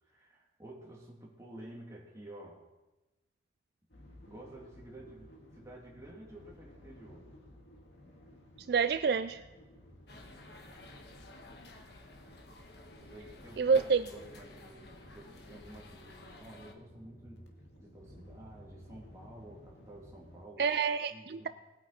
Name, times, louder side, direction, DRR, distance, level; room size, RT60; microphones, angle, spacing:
voice 1, 0.0-2.6 4.3-7.3 8.2-8.3 10.1-10.9 13.0-17.5 17.8-20.7 21.1-21.5, right 1 dB, 15° right, -4 dB, 3.0 m, -51 dB
sound 1, 3.9-20.5, equal, 80° left, 2.0 m, -56 dB
voice 2, 8.7-9.4 13.6-14.0 20.6-21.5, right 5 dB, 60° right, 11 dB, 0.4 m, -28 dB
sound 2, 10.1-16.7, left 2 dB, 65° left, 1.3 m, -52 dB
19.5 x 9.0 x 4.4 m, 1.1 s
head